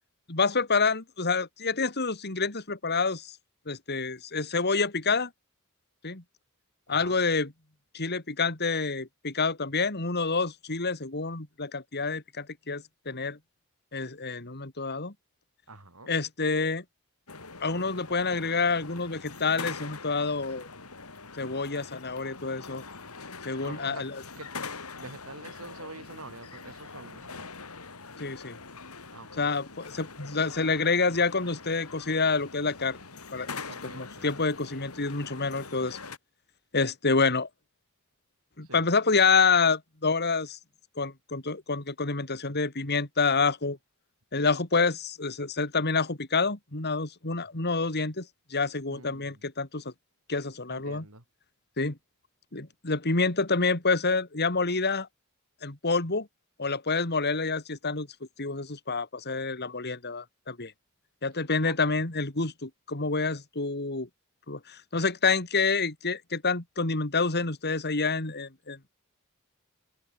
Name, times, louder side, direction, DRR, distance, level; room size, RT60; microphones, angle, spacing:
voice 1, 0.3-3.4 3.7-5.3 6.0-6.2 6.9-7.5 7.9-13.4 13.9-15.1 16.1-16.8 17.6-20.7 21.4-22.8 23.4-24.2 28.2-28.6 29.4-33.0 33.3-33.5 33.8-36.0 36.7-37.5 38.6-40.6 41.0-43.8 44.3-49.9 50.3-51.1 51.8-52.0 52.5-55.1 55.6-56.3 56.6-58.1 58.4-60.7 61.2-64.1 64.5-68.9, left 4 dB, 50° left, 3.2 m, -28 dB
voice 2, 15.7-16.1 23.6-24.1 24.4-24.6 24.9-27.5 29.1-29.4 33.7-34.3 38.7-38.9 48.9-49.4 50.7-51.2 61.6-61.8, right 3 dB, 75° right, 7.1 m, -46 dB
sound 1, 17.3-36.2, left 4 dB, 90° left, 5.5 m, -43 dB
open air
head